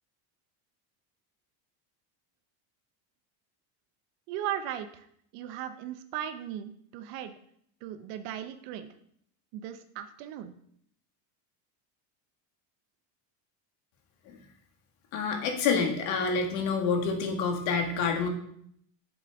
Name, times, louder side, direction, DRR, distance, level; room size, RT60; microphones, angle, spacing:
voice 1, 4.3-5.1 5.3-7.3 7.8-8.9 9.5-10.5, right 10 dB, 75° right, 10 dB, 0.8 m, -37 dB
voice 2, 15.1-18.3, left 5 dB, 65° left, 3 dB, 1.9 m, -28 dB
8.2 x 7.4 x 3.5 m, 0.68 s
cardioid pair, 160°, 50 cm